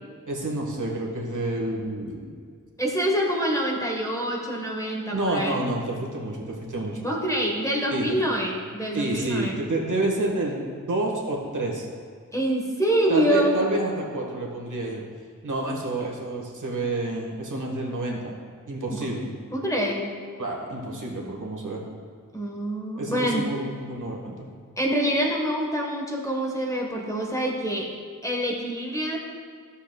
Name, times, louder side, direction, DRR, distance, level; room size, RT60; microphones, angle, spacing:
voice 1, 0.3-2.3 5.1-7.1 7.9-8.2 8.9-11.9 13.1-15.0 15.4-18.3 18.7-19.3 20.4-21.8 23.0-24.5, right 2 dB, 70° right, -1 dB, 1.4 m, -29 dB
voice 2, 2.8-5.6 7.0-9.6 12.3-13.6 18.9-19.1 19.5-20.1 22.3-23.5 24.8-27.9 28.2-29.2, right 1 dB, 10° left, -1 dB, 1.1 m, -26 dB
11.5 x 7.0 x 2.2 m, 2.1 s
wide cardioid pair, 80°, 32 cm